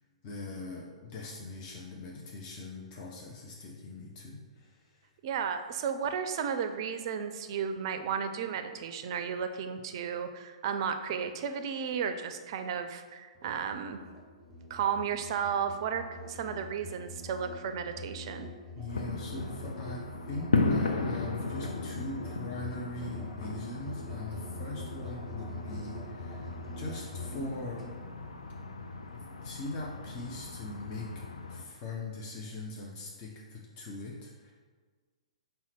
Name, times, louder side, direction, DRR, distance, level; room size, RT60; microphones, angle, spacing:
voice 1, 0.2-5.0 18.7-27.8 29.1-31.1 31.5-34.5, left 2 dB, 30° left, -2 dB, 0.6 m, -41 dB
voice 2, 5.2-14.0 14.7-18.5, right 7 dB, 45° right, 8 dB, 0.4 m, -33 dB
Musical instrument, 13.3-28.0, left 1 dB, ahead, 1.0 m, -44 dB
sound 1, 18.9-31.6, left 3 dB, 75° left, 0.4 m, -36 dB
5.5 x 2.2 x 4.3 m, 1.5 s
figure-of-eight pair, 115°, 3 cm